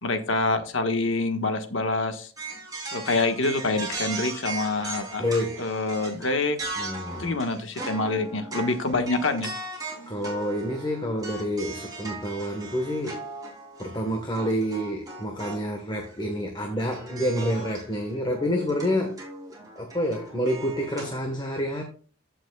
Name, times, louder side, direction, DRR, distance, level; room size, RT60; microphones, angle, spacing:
voice 1, 0.0-2.3 2.9-5.2 5.6-6.6 7.2-9.5, left 2 dB, 60° left, 1.4 m, -26 dB
sound 1, 2.4-15.6 16.0-16.1 16.8-21.2, right 3 dB, 15° right, 3.3 m, -38 dB
voice 2, 5.2-5.7 6.8-7.4 10.1-13.2 13.8-19.2 19.8-21.8, equal, 20° left, 1.3 m, -28 dB
15.0 x 6.0 x 2.3 m
head